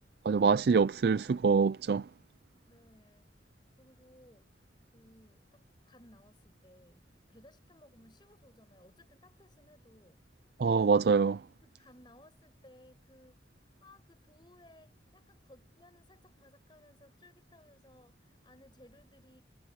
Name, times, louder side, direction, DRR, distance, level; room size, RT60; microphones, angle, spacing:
voice 1, 0.3-2.1 10.6-11.4, right 5 dB, 60° right, 0.4 m, -25 dB
voice 2, 2.7-10.2 11.6-19.4, left 1 dB, 25° left, 7.7 m, -61 dB
head